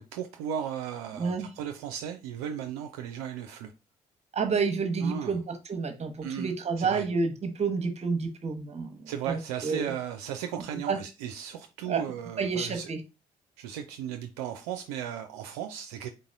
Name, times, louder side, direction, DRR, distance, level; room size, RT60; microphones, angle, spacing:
voice 1, 0.0-3.7 5.0-5.3 6.2-7.1 9.1-12.9 13.6-16.1, right 9 dB, 70° right, 0.4 m, -36 dB
voice 2, 1.1-1.5 4.3-9.9 10.9-11.0 11.9-12.0 12.4-13.0, right 5 dB, 35° right, 0.9 m, -29 dB
3.9 x 3.8 x 2.5 m
figure-of-eight pair, 40°, 20 cm